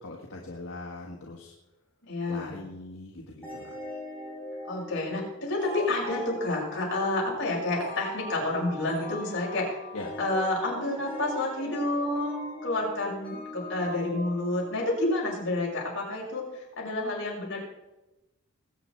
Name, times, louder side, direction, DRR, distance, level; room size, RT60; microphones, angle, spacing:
voice 1, 0.0-1.5 2.3-3.7 9.9-10.1, left 2 dB, 75° left, -2 dB, 1.6 m, -41 dB
voice 2, 2.0-2.6 4.7-9.8 10.2-17.6, left 2 dB, 55° left, -3 dB, 5.4 m, -29 dB
sound 1, 3.4-15.8, left 1 dB, 5° left, 5.9 m, -41 dB
20.5 x 8.6 x 4.5 m, 1.0 s
head